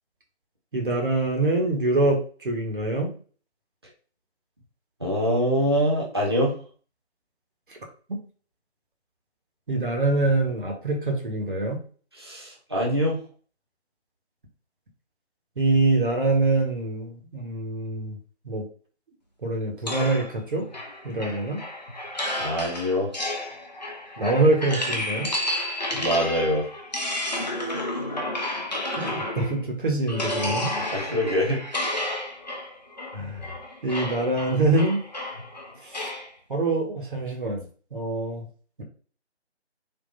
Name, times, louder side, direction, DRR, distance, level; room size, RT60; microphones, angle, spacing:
voice 1, 0.7-3.1 9.7-11.8 15.6-18.2 18.4-18.6 19.4-20.7 21.0-21.6 24.2-25.3 29.0-30.7 33.1-33.5 33.8-35.0 35.8-36.1 36.5-37.6 37.9-38.4, right 2 dB, 50° right, 1 dB, 1.0 m, -24 dB
voice 2, 5.0-6.5 12.2-13.2 22.4-23.1 25.9-26.7 30.9-31.6, equal, 25° right, -3 dB, 0.6 m, -24 dB
sound 1, 19.9-29.7 30.1-36.3, left 1 dB, 40° left, 0.6 m, -31 dB
3.5 x 2.6 x 2.6 m, 0.41 s
figure-of-eight pair, 155°, 34 cm